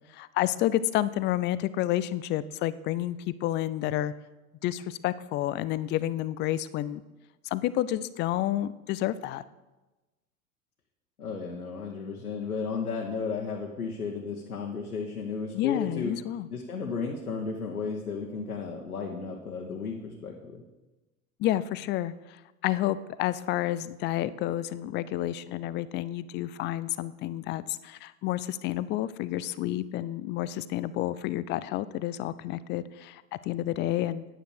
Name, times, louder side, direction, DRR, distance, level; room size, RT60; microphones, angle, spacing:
voice 1, 0.1-4.1 4.6-7.0 7.5-9.4 15.5-16.5 21.4-34.2, left 14 dB, 25° left, 16 dB, 0.4 m, -30 dB
voice 2, 11.2-16.1 16.5-20.6, left 5 dB, 80° left, -1 dB, 1.4 m, -34 dB
9.3 x 9.2 x 6.5 m, 1.1 s
figure-of-eight pair, 80°, 44 cm